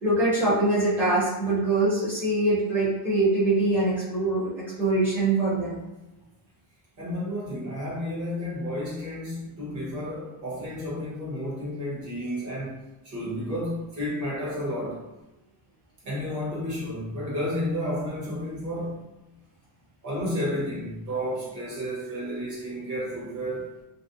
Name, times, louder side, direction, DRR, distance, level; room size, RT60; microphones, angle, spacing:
voice 1, 0.0-4.5 4.8-5.8, right 2 dB, 5° right, -10 dB, 0.7 m, -23 dB
voice 2, 7.0-15.0 16.0-19.0 20.0-23.7, equal, 40° right, -6 dB, 1.0 m, -31 dB
2.5 x 2.0 x 2.5 m, 0.97 s
cardioid pair, 170°, 46 cm